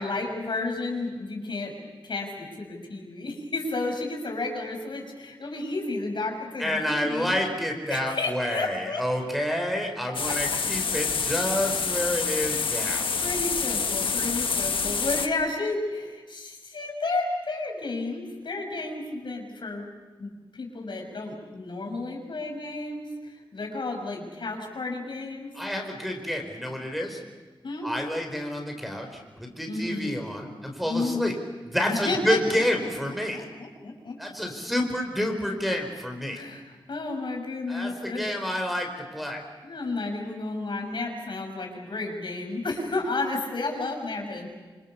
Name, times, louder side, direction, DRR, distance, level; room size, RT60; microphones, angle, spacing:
voice 1, 0.0-1.7 2.0-7.4 7.9-9.0 10.3-10.6 12.9-19.9 20.2-25.5 27.6-27.9 29.7-30.1 30.8-31.3 31.9-32.4 33.3-34.2 36.3-36.6 36.9-38.3 39.6-44.5, left 3 dB, 65° left, 2 dB, 6.7 m, -32 dB
voice 2, 6.6-13.1 25.5-27.2 27.8-31.3 31.6-33.5 34.2-36.4 37.7-39.4, equal, ahead, 3 dB, 4.7 m, -29 dB
sound 1, 10.1-15.3, left 5 dB, 90° left, 1.5 m, -27 dB
27.5 x 27.0 x 7.0 m, 1.3 s
wide cardioid pair, 115°, 9 cm